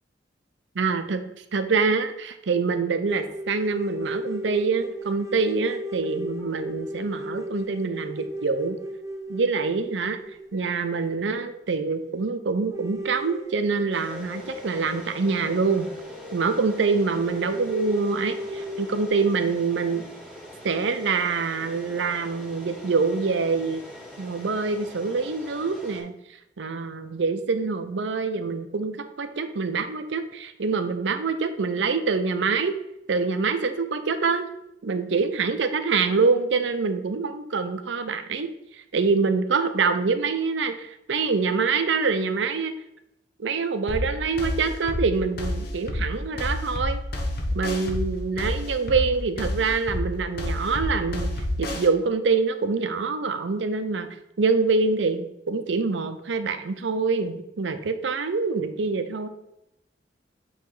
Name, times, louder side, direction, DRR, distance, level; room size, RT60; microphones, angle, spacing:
voice 1, 0.8-1.2 1.5-8.8 9.3-10.2 10.5-15.9 16.3-20.1 20.6-23.8 24.2-26.1 26.6-32.7 33.1-34.5 34.8-38.5 38.9-42.7 43.4-47.0 47.5-51.3 51.6-54.1 54.4-59.3, right 4 dB, 75° right, 9 dB, 0.6 m, -25 dB
sound 1, 3.1-11.7 12.1-12.2 12.7-19.1, equal, 20° right, 0.8 m, -36 dB
sound 2, 13.9-26.0, equal, 10° left, 2.3 m, -44 dB
sound 3, 43.9-51.9, left 1 dB, 60° left, 0.9 m, -29 dB
8.3 x 3.1 x 3.9 m, 0.84 s
head